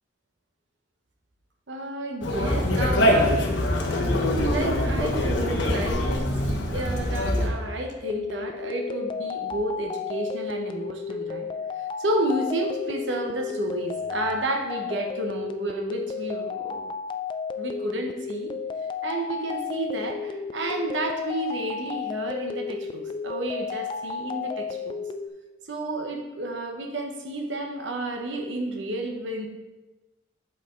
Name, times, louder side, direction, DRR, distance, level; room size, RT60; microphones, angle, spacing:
voice 1, 1.7-3.4 4.4-11.5 12.0-16.8 17.6-18.5 19.0-25.0 25.7-29.5, right 1 dB, 85° right, 3 dB, 1.1 m, -31 dB
Conversation, 2.2-7.5, left 1 dB, 80° left, 1.2 m, -23 dB
sound 1, 8.0-25.3, left 5 dB, 25° left, 0.3 m, -33 dB
8.0 x 4.8 x 3.9 m, 1.1 s
head